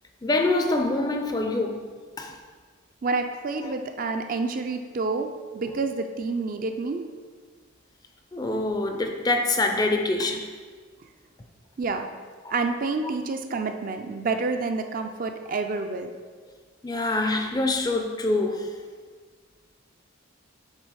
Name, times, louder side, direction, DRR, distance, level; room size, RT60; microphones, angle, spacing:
voice 1, 0.2-1.9 2.2-2.4 3.6-3.7 8.3-10.5 12.4-12.5 16.8-18.8, left 2 dB, 20° left, 4 dB, 0.4 m, -25 dB
voice 2, 3.0-7.1 11.8-12.1 12.5-16.1, right 3 dB, 40° right, 6 dB, 0.4 m, -28 dB
7.5 x 3.7 x 4.7 m, 1.5 s
head